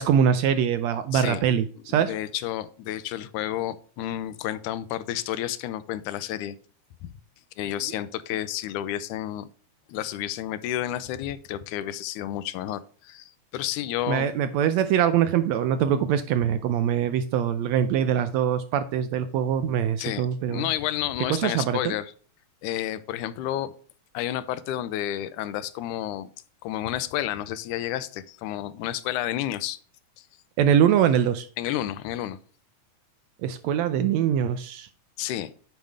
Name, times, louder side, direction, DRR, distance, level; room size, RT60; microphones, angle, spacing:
voice 1, 0.0-2.1 14.1-20.7 21.3-21.9 30.6-31.5 33.4-34.9, right 9 dB, 75° right, 11 dB, 1.7 m, -23 dB
voice 2, 1.9-6.6 7.0-7.1 7.6-9.5 9.9-14.3 20.0-22.1 22.6-23.7 24.1-26.3 26.6-29.8 30.2-30.3 31.6-32.4 35.2-35.5, left 12 dB, 85° left, 14 dB, 2.1 m, -31 dB
9.3 x 5.1 x 3.4 m, 0.43 s
omnidirectional pair, 3.5 m